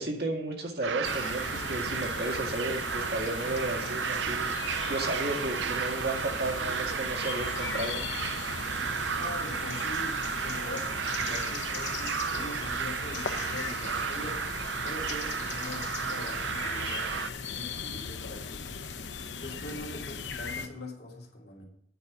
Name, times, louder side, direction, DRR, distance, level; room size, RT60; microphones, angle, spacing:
voice 1, 0.0-8.0, right 2 dB, 60° right, 1 dB, 2.0 m, -33 dB
sound 1, 0.8-17.3, right 7 dB, 80° right, 0.6 m, -33 dB
sound 2, 1.0-20.7, left 5 dB, 75° left, 0.8 m, -38 dB
voice 2, 9.1-14.4 14.8-17.2 17.4-18.7 19.4-21.6, left 1 dB, 55° left, -1 dB, 2.7 m, -42 dB
9.4 x 5.5 x 8.1 m, 0.67 s
head